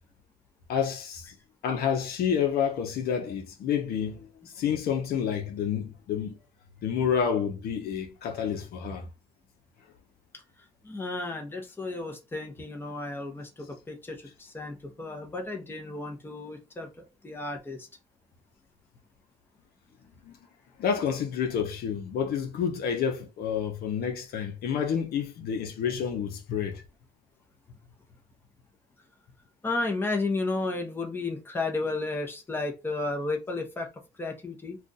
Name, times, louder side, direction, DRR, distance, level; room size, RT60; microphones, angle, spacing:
voice 1, 0.7-1.3 1.6-4.3 4.5-6.4 6.8-9.1 20.2-20.3 20.8-26.8, left 7 dB, 65° left, 0.8 m, -29 dB
voice 2, 10.8-17.9 29.6-33.9 34.2-34.8, left 3 dB, 15° left, 0.8 m, -33 dB
2.4 x 2.4 x 3.9 m
cardioid pair, 110°, 17 cm